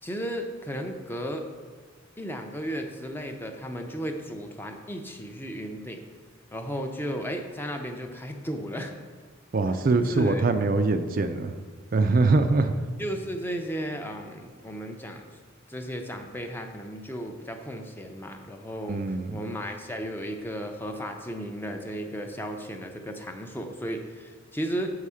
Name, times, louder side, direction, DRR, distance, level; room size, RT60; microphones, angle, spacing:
voice 1, 0.0-1.4 2.2-6.1 6.5-8.9 10.1-10.5 13.0-15.2 15.7-24.9, equal, 10° left, 4 dB, 0.5 m, -34 dB
voice 2, 9.5-11.5 11.9-12.7 18.9-19.4, right 3 dB, 40° right, 7 dB, 0.4 m, -23 dB
7.0 x 4.8 x 5.6 m, 1.5 s
head